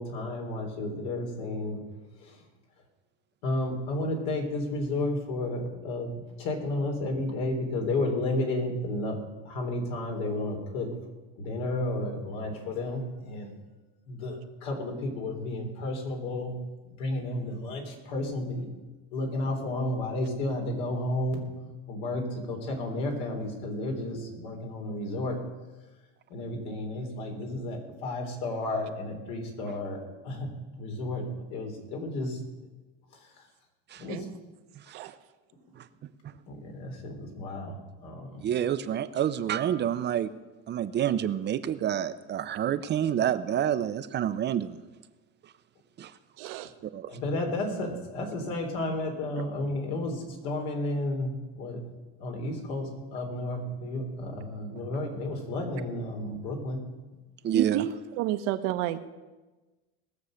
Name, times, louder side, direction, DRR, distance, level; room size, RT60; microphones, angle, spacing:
voice 1, 0.0-1.8 2.2-2.4 3.4-6.1 6.4-9.2 9.5-10.9 11.4-13.5 14.1-16.5 17.0-18.7 19.1-21.4 21.9-25.4 26.3-30.5 30.8-31.2 31.5-32.4 34.0-34.3 36.5-37.8 38.0-38.4 47.1-51.8 52.2-56.8, left 2 dB, 75° left, 2 dB, 3.8 m, -32 dB
voice 2, 38.4-40.3 40.7-44.8 46.0-46.1 46.9-47.1 57.4-57.8, right 10 dB, 35° right, 11 dB, 0.7 m, -28 dB
voice 3, 46.4-46.7 57.5-59.0, right 13 dB, 70° right, 9 dB, 1.1 m, -30 dB
19.5 x 7.1 x 6.5 m, 1.2 s
supercardioid pair, 115°, 31 cm